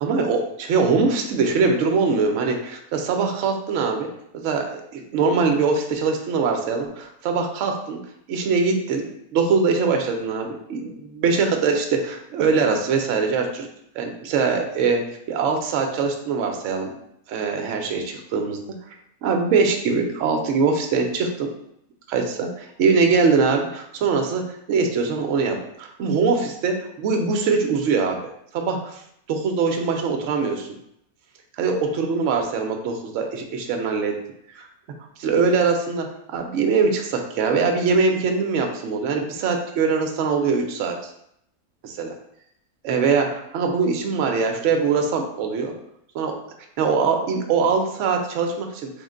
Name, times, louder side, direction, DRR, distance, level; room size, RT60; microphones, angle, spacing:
voice 1, 0.0-4.1 4.3-8.0 8.3-13.7 14.0-15.0 15.3-16.9 17.3-18.6 19.2-21.5 22.1-24.4 24.7-28.2 28.5-29.0 29.3-30.7 31.6-34.1 34.5-34.7 35.2-36.1 36.3-41.0 41.8-42.1 42.8-45.7 46.1-46.3 46.8-48.9, right 4 dB, 70° right, 3 dB, 0.8 m, -22 dB
3.8 x 2.1 x 3.6 m, 0.74 s
omnidirectional pair, 1.5 m